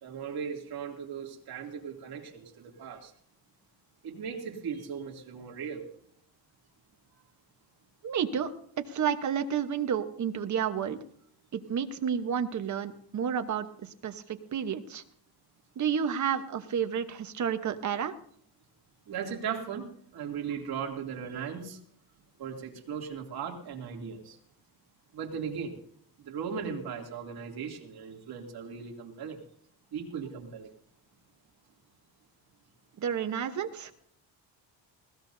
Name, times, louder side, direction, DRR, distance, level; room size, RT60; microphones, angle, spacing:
voice 1, 0.0-3.1 4.0-5.9 19.1-21.8 22.4-24.4 25.1-25.7 26.2-29.4 29.9-30.7, right 7 dB, 55° right, 1 dB, 2.8 m, -37 dB
voice 2, 8.0-8.5 8.9-11.0 11.5-15.0 15.8-18.2 33.0-33.9, right 8 dB, 40° right, 8 dB, 1.1 m, -31 dB
20.5 x 17.5 x 2.7 m, 0.62 s
cardioid pair, 160°, 43 cm